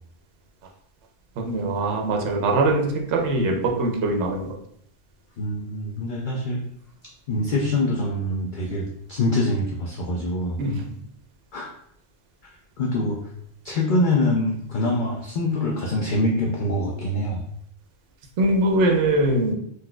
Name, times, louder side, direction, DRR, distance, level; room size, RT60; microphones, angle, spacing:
voice 1, 1.4-4.5 10.6-10.8 18.4-19.5, right 2 dB, 70° right, 2 dB, 0.9 m, -22 dB
voice 2, 5.4-6.6 7.3-10.6 11.5-11.7 12.8-13.2 13.6-17.4, left 1 dB, 65° left, -1 dB, 0.5 m, -24 dB
4.0 x 2.6 x 2.2 m, 0.70 s
omnidirectional pair, 1.3 m